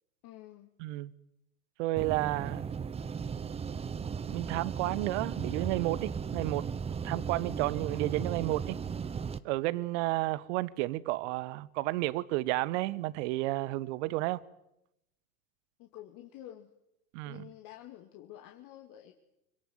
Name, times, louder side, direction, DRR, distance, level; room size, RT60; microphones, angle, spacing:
voice 1, 0.2-0.7 15.8-16.7 17.3-19.2, left 12 dB, 40° left, 2.6 m, -49 dB
voice 2, 0.8-1.1 1.8-2.7 4.3-6.7 7.0-8.8 9.4-14.4 17.1-17.4, right 19 dB, 50° right, 1.4 m, -32 dB
sound 1, 2.0-9.4, right 6 dB, 15° right, 0.9 m, -36 dB
26.0 x 24.5 x 8.1 m
figure-of-eight pair, 95°, 46 cm